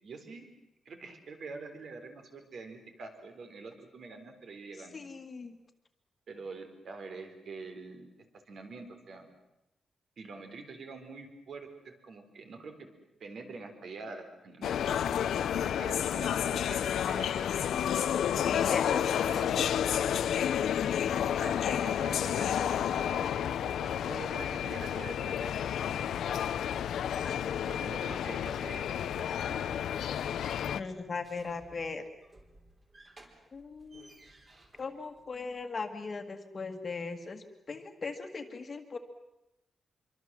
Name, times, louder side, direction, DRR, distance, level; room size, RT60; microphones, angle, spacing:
voice 1, 0.0-0.5 0.8-5.0 6.3-8.1 8.5-9.3 10.2-12.9 13.2-15.2 15.6-17.7 19.3-19.7 20.7-25.6 27.6-29.8, right 4 dB, 55° right, 6 dB, 4.1 m, -46 dB
voice 2, 4.9-5.5 18.5-19.7 27.2-27.3 30.7-32.0 33.5-34.2 34.8-39.0, left 4 dB, 30° left, 6 dB, 1.8 m, -39 dB
sound 1, 14.6-30.8, left 9 dB, 85° left, 0.9 m, -30 dB
sound 2, 30.6-35.7, right 2 dB, 25° right, 4.0 m, -59 dB
26.5 x 24.0 x 7.6 m, 0.89 s
wide cardioid pair, 175°, 0 cm